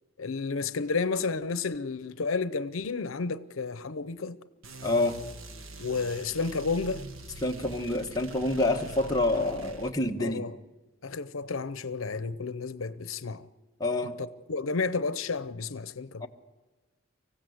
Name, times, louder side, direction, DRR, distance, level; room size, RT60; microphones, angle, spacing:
voice 1, 0.2-4.4 5.8-7.1 10.2-10.6 11.0-13.5 14.5-16.2, left 4 dB, 85° left, 0.7 m, -31 dB
sound 1, 4.6-9.9, right 2 dB, 80° right, 1.5 m, -44 dB
voice 2, 4.8-5.2 7.4-10.5 13.8-14.2 16.2-16.3, left 2 dB, 20° left, 1.3 m, -27 dB
24.5 x 16.0 x 8.0 m
head